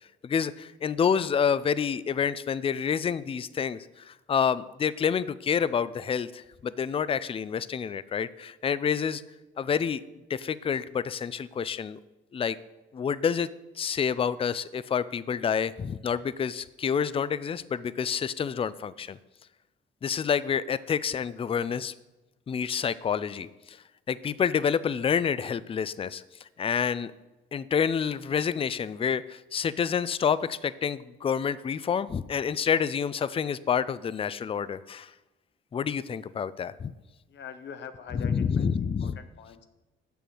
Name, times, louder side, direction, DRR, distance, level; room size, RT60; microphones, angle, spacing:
voice 1, 0.2-9.2 9.6-10.0 10.3-12.0 12.3-12.6 12.9-13.5 13.8-19.2 20.0-21.9 22.5-23.8 24.1-27.1 27.5-35.1 35.7-36.9 38.1-39.2, left 7 dB, 30° left, 16 dB, 0.4 m, -28 dB
voice 2, 37.3-39.7, left 7 dB, 65° left, 8 dB, 0.9 m, -44 dB
6.8 x 6.2 x 7.7 m, 1.0 s
cardioid pair, 90°, 20 cm